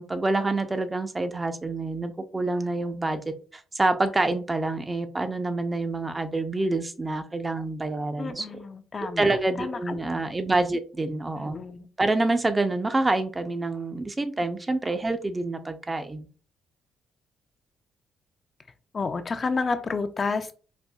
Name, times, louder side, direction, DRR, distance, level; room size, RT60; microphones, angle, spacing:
voice 1, 0.0-8.6 9.2-11.6 12.0-16.3, right 2 dB, 20° right, 9 dB, 0.4 m, -27 dB
voice 2, 8.2-9.3 9.6-10.2 11.4-11.9 18.9-20.5, left 4 dB, 35° left, 9 dB, 0.4 m, -30 dB
4.2 x 2.3 x 2.2 m, 0.38 s
cardioid pair, 90°, 0 cm